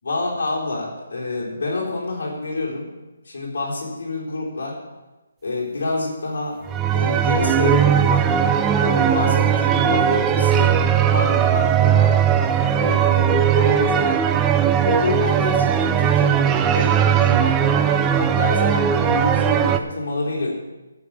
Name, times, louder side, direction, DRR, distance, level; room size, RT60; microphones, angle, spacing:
voice 1, 0.0-2.9 3.2-4.8 5.4-6.6 6.9-8.2 8.8-10.7 11.1-12.2 12.8-14.3 14.8-17.7 18.0-20.5, left 2 dB, 50° left, -2 dB, 3.9 m, -27 dB
sound 1, 6.7-19.8, right 8 dB, 10° right, 0.3 m, -18 dB
14.0 x 4.9 x 8.7 m, 1.1 s
hypercardioid pair, 180°, 0 cm